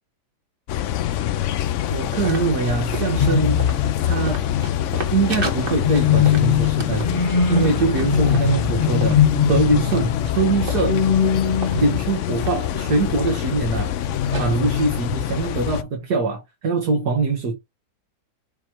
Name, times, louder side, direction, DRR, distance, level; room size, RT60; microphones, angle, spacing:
sound 1, 0.7-15.8, left 12 dB, 85° left, 0.6 m, -25 dB
voice 1, 1.9-3.6 4.0-4.4 5.1-7.1 7.5-9.2 9.5-11.0 11.7-13.9 14.3-17.5, right 3 dB, 65° right, 1.8 m, -23 dB
sound 2, 2.0-14.7, right 3 dB, 35° right, 1.6 m, -35 dB
sound 3, 3.2-4.3 5.8-12.3, left 7 dB, 35° left, 1.0 m, -21 dB
7.3 x 3.0 x 4.6 m
omnidirectional pair, 1.8 m